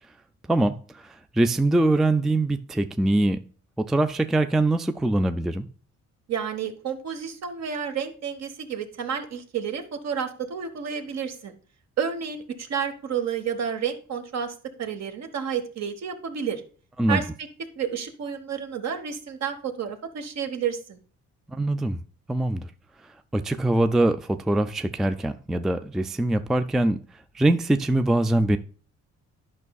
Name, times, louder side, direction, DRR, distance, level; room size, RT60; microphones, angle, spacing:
voice 1, 0.5-3.4 3.8-5.7 17.0-17.2 21.5-22.0 22.3-22.7 23.3-27.0 27.3-28.6, right 2 dB, ahead, 0.3 m, -23 dB
voice 2, 6.3-11.6 12.0-16.6 17.1-17.2 17.8-21.0, right 7 dB, 60° right, 1.2 m, -30 dB
11.0 x 5.4 x 2.3 m
cardioid pair, 90°, 30 cm